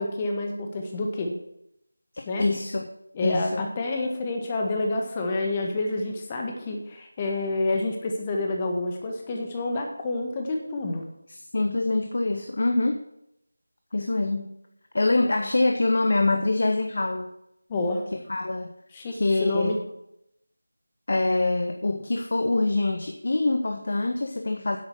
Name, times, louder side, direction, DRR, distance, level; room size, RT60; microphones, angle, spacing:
voice 1, 0.0-1.3 2.3-2.5 3.1-11.1 17.7-18.0 18.9-19.8, left 2 dB, 20° left, 2 dB, 1.6 m, -28 dB
voice 2, 2.1-2.9 3.2-3.6 11.3-13.0 13.9-14.5 14.9-17.3 18.3-18.7 19.1-19.8 21.1-24.8, left 2 dB, 45° left, 5 dB, 1.0 m, -25 dB
10.0 x 8.7 x 6.2 m, 0.78 s
figure-of-eight pair, 165°, 0 cm